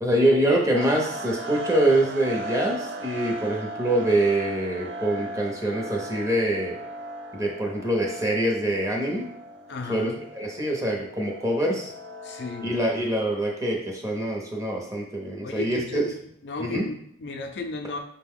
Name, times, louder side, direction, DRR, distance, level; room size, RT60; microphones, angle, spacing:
voice 1, 0.0-6.8 7.3-9.2 9.9-11.9 12.6-16.0 16.6-16.9, right 1 dB, 15° right, -1 dB, 0.7 m, -25 dB
sound 1, 0.7-13.1, right 1 dB, 75° right, 0.4 m, -37 dB
voice 2, 9.7-10.2 12.2-13.0 15.4-16.2 16.4-18.0, left 3 dB, 65° left, 4 dB, 0.5 m, -34 dB
5.2 x 2.2 x 3.6 m, 0.70 s
head